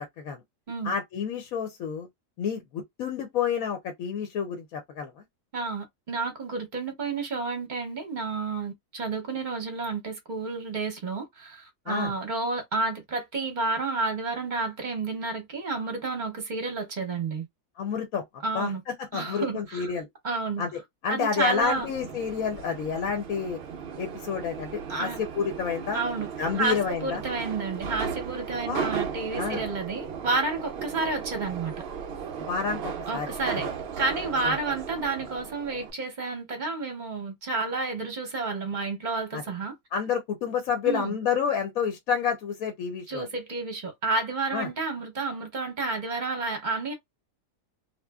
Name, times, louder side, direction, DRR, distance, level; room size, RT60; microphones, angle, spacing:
voice 1, 0.8-2.1 2.4-5.1 11.9-12.1 17.8-18.2 18.5-20.1 20.6-23.6 24.0-26.0 26.4-27.2 28.7-28.9 29.4-29.6 32.4-32.8 33.1-33.3 34.4-34.5 39.3-39.4 39.9-43.3 44.5-44.7, left 6 dB, 65° left, 0.9 m, -29 dB
voice 2, 5.5-17.4 18.4-18.8 19.1-19.9 20.2-20.6 21.1-21.9 24.9-25.2 25.9-26.3 26.6-31.7 33.1-33.7 34.0-39.7 40.8-41.2 43.1-46.9, right 3 dB, 40° right, 0.7 m, -30 dB
Subway metro underground, 21.6-35.9, right 7 dB, 80° right, 0.5 m, -36 dB
2.9 x 2.4 x 2.2 m
omnidirectional pair, 1.8 m